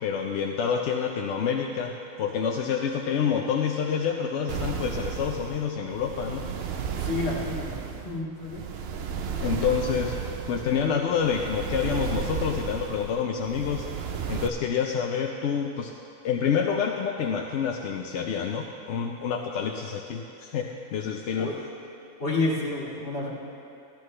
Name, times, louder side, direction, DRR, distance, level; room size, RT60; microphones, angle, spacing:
voice 1, 0.0-1.9 2.2-6.5 9.4-10.1 10.5-13.9 14.3-15.9 16.2-21.5, left 7 dB, 65° left, 2 dB, 0.8 m, -27 dB
sound 1, 4.5-14.5, right 7 dB, 60° right, 0.7 m, -33 dB
voice 2, 7.0-8.7 21.4-21.5 22.2-23.3, left 2 dB, 40° left, -5 dB, 2.0 m, -30 dB
14.0 x 12.0 x 3.2 m, 2.8 s
omnidirectional pair, 1.6 m